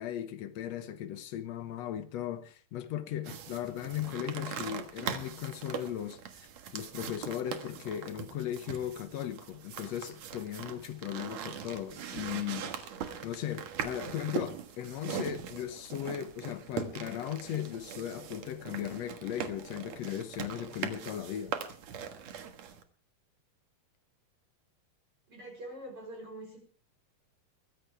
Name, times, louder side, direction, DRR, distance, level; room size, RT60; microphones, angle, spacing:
voice 1, 0.0-6.5 6.7-12.7 13.2-21.5, left 11 dB, 85° left, 1.4 m, -37 dB
sound 1, 3.2-22.8, right 8 dB, 55° right, 2.2 m, -41 dB
voice 2, 25.3-26.6, right 1 dB, 35° right, 4.7 m, -44 dB
22.0 x 15.0 x 3.4 m
omnidirectional pair, 4.4 m